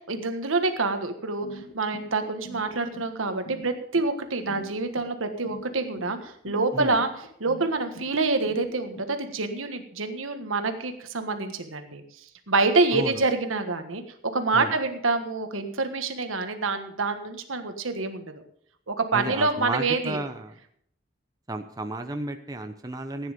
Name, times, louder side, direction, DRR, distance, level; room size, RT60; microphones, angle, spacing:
voice 1, 0.0-1.5 1.7-7.1 7.4-12.0 12.5-14.0 14.3-18.4 18.9-20.2, right 3 dB, 90° right, 7 dB, 1.5 m, -27 dB
sound 1, 1.4-9.1, left 1 dB, 85° left, 1.7 m, -43 dB
voice 2, 12.9-13.3 14.5-14.7 19.1-20.6 21.5-23.3, right 2 dB, 20° right, 6 dB, 0.8 m, -33 dB
15.0 x 9.6 x 5.1 m, 0.67 s
head